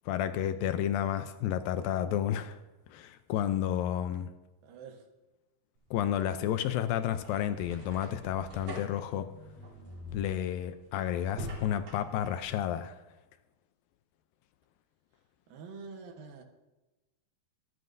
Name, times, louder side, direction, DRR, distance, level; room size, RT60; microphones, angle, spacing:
voice 1, 0.1-2.6 2.9-4.3 5.9-9.3 10.1-13.0, left 10 dB, 80° left, 10 dB, 2.3 m, -31 dB
voice 2, 4.6-5.0 15.5-16.4, right 5 dB, 70° right, 4 dB, 2.9 m, -46 dB
sound 1, 5.8-12.5, equal, 50° right, 4.4 m, -46 dB
24.5 x 9.5 x 2.6 m, 1.1 s
omnidirectional pair, 4.3 m